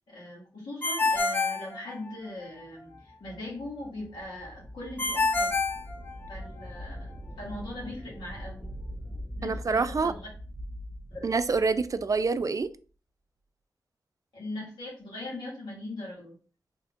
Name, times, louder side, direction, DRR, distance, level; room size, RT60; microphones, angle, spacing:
voice 1, 0.1-5.6 6.3-8.7 9.4-10.3 11.1-11.3 14.3-16.3, left 1 dB, 90° left, 2.0 m, -40 dB
Ringtone, 0.8-2.4 5.0-6.6, left 3 dB, 25° left, 0.9 m, -27 dB
sound 1, 2.6-12.7, equal, 15° right, 1.2 m, -43 dB
voice 2, 9.4-10.1 11.2-12.7, right 4 dB, 45° right, 0.3 m, -26 dB
3.5 x 2.4 x 3.5 m
cardioid pair, 40°, 8 cm